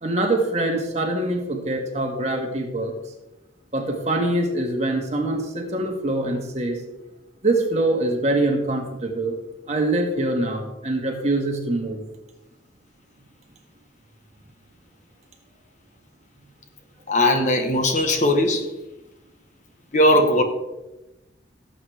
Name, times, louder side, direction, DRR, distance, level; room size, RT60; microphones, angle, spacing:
voice 1, 0.0-2.9 3.7-6.8 7.4-9.4 9.7-12.0 17.1-17.2, right 2 dB, 35° right, 1.8 m, -24 dB
voice 2, 17.1-18.7 19.9-20.4, left 1 dB, 40° left, 1.3 m, -18 dB
17.5 x 8.0 x 3.5 m
head